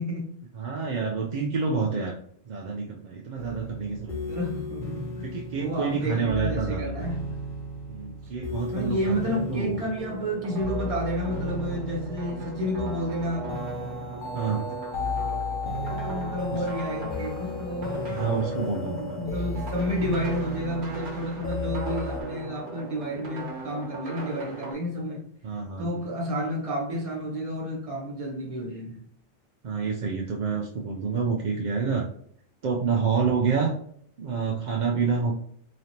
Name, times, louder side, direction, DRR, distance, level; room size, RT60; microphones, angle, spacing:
voice 1, 0.0-0.4 4.3-7.3 8.7-13.6 15.8-18.2 18.8-25.2 25.8-29.0, equal, 30° right, 1.1 m, -31 dB
voice 2, 0.5-2.2 2.5-4.4 5.2-7.0 7.9-9.8 14.3-14.7 16.5-16.6 18.1-19.2 25.4-26.0 29.6-32.1 32.6-33.7 34.2-35.3, right 5 dB, 55° right, 0.5 m, -28 dB
sound 1, 3.4-22.2, left 2 dB, 50° left, 0.8 m, -35 dB
sound 2, 10.0-24.7, right 3 dB, 80° right, 1.4 m, -38 dB
4.0 x 3.1 x 2.8 m
omnidirectional pair, 1.2 m